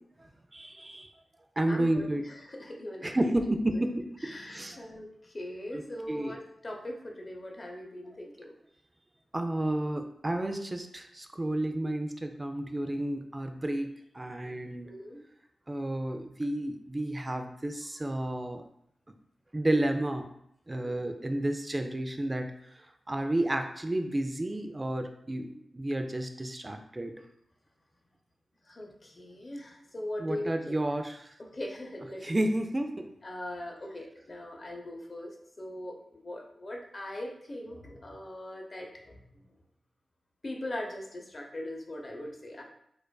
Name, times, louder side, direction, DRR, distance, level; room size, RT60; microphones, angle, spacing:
voice 1, 0.5-1.1 1.6-2.2 3.0-4.8 5.7-5.8 6.1-6.4 9.3-13.9 14.1-14.9 15.7-18.7 19.5-20.3 20.7-27.1 30.2-31.3 32.2-33.1, right 1 dB, 30° right, 5 dB, 0.4 m, -31 dB
voice 2, 1.7-2.0 2.5-3.2 4.2-8.5 14.8-15.2 20.8-21.2 28.7-30.8 31.4-32.5 33.2-39.2 40.4-42.6, left 1 dB, 40° left, 0 dB, 0.8 m, -40 dB
4.5 x 2.5 x 2.3 m, 0.74 s
cardioid pair, 45°, 0 cm